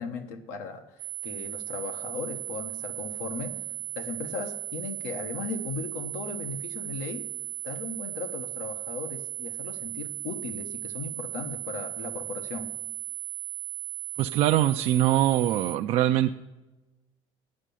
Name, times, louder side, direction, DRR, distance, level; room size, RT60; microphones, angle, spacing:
voice 1, 0.0-3.6 4.0-7.3 7.6-12.7, left 5 dB, 85° left, 5 dB, 1.2 m, -37 dB
sound 1, 1.0-15.8, right 16 dB, 85° right, 0.9 m, -37 dB
voice 2, 14.2-16.3, right 13 dB, 50° right, 5 dB, 0.4 m, -23 dB
9.1 x 7.6 x 8.4 m, 1.1 s
cardioid pair, 145°, 12 cm